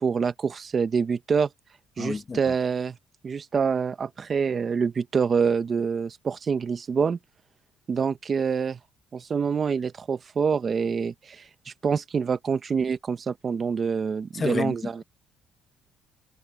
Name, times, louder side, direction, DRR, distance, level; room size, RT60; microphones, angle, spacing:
voice 1, 0.0-1.5 2.0-3.0 3.2-7.2 7.9-8.8 9.1-15.0, right 6 dB, 35° right, 0.9 m, -26 dB
voice 2, 2.0-2.4 14.4-14.7, left 4 dB, 25° left, 1.3 m, -28 dB
cardioid pair, 125°, 0 cm